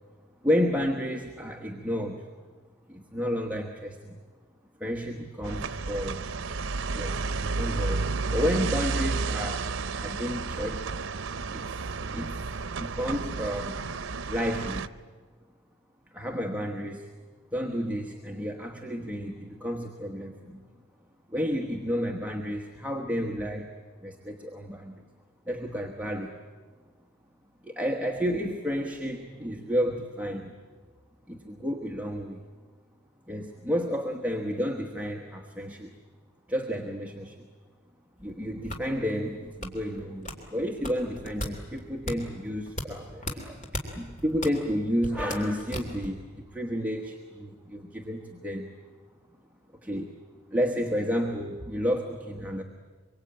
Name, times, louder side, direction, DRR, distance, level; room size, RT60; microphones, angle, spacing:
voice 1, 0.4-2.3 2.9-4.2 4.8-6.2 6.9-10.8 11.5-11.7 12.1-12.3 12.8-13.8 14.3-14.8 16.1-17.1 17.5-20.6 21.3-23.7 24.0-24.9 25.4-26.4 27.6-30.5 31.3-32.4 33.3-36.0 36.5-37.5 38.2-48.7 49.8-50.1 50.5-52.6, equal, 10° right, 2 dB, 1.3 m, -31 dB
sound 1, 5.4-14.9, right 4 dB, 85° right, 0.7 m, -31 dB
sound 2, 38.2-46.2, left 1 dB, 40° left, 3.0 m, -37 dB
24.5 x 24.0 x 8.9 m, 1.5 s
head